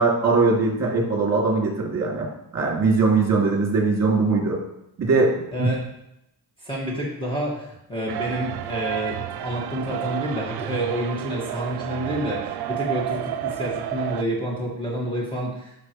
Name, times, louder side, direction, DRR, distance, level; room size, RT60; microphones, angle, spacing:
voice 1, 0.0-2.3 2.5-4.6 5.0-5.7, right 3 dB, 45° right, -2 dB, 2.5 m, -21 dB
voice 2, 5.5-5.9 6.6-15.7, equal, 10° left, -4 dB, 1.8 m, -29 dB
sound 1, 8.1-14.2, right 11 dB, 80° right, 0.6 m, -30 dB
12.0 x 6.0 x 3.1 m, 0.86 s
cardioid pair, 135°, 38 cm